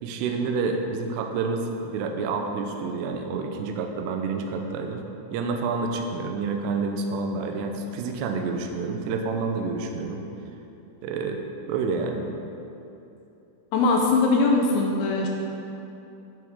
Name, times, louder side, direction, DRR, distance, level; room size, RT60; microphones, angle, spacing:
voice 1, 0.0-5.0 5.3-10.2 11.0-11.4 11.7-12.3, right 4 dB, 80° right, 4 dB, 2.5 m, -28 dB
voice 2, 13.7-15.3, left 3 dB, 75° left, 0 dB, 3.0 m, -21 dB
14.0 x 9.1 x 3.7 m, 2.9 s
omnidirectional pair, 5.7 m